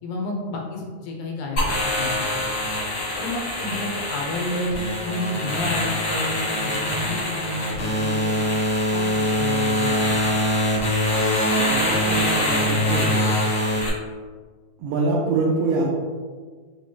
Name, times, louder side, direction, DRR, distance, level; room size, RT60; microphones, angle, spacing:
voice 1, 0.0-2.3 3.2-8.4 8.9-10.4, left 2 dB, 80° left, 0 dB, 1.9 m, -30 dB
sound 1, 1.6-13.9, left 1 dB, 60° left, 1.1 m, -23 dB
voice 2, 11.6-13.3 14.8-15.9, right 3 dB, 80° right, -4 dB, 1.9 m, -24 dB
5.7 x 2.2 x 3.1 m, 1.5 s
omnidirectional pair, 3.5 m